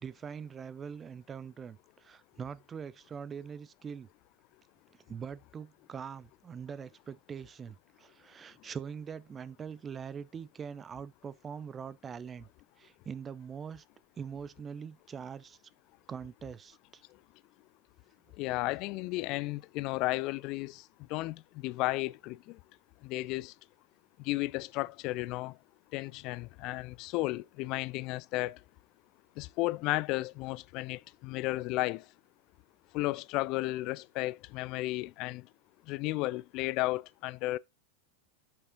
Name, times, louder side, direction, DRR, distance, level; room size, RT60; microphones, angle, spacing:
voice 1, 0.0-4.1 5.1-12.5 12.8-13.8 14.2-15.6 16.1-17.0, right 7 dB, 20° right, 0.5 m, -43 dB
voice 2, 18.4-20.8 21.1-22.6 23.0-23.5 24.2-25.5 25.9-28.6 29.4-32.0 32.9-35.5 35.9-37.6, left 20 dB, 40° left, 0.4 m, -33 dB
7.0 x 5.4 x 3.8 m
figure-of-eight pair, 90°, 0 cm